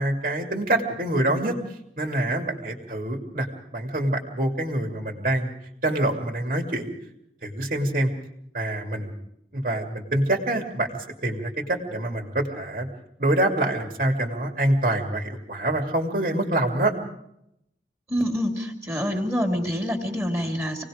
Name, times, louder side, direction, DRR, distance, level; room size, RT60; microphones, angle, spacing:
voice 1, 0.0-5.5 5.8-6.9 7.4-8.1 8.5-9.1 9.5-12.9 13.2-16.9, right 1 dB, 50° right, 3 dB, 2.5 m, -26 dB
voice 2, 18.1-20.8, equal, 15° right, 1 dB, 2.7 m, -26 dB
27.0 x 19.0 x 5.0 m, 0.79 s
head